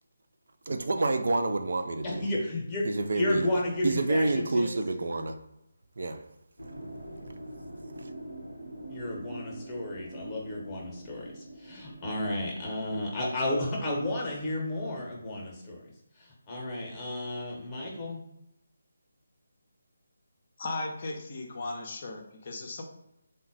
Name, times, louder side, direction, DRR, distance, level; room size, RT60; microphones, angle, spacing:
voice 1, 0.7-2.3 2.8-3.5 3.8-5.4 6.0-6.2, right 2 dB, 55° right, 0.4 m, -28 dB
voice 2, 2.0-2.9 3.1-4.7 8.9-15.8 16.2-18.2, left 1 dB, 15° left, 0.9 m, -32 dB
sound 1, 6.6-14.1, right 1 dB, 85° right, 1.0 m, -45 dB
voice 3, 20.6-22.8, left 2 dB, 35° left, 0.5 m, -36 dB
3.8 x 2.2 x 3.8 m
figure-of-eight pair, 150°, 0 cm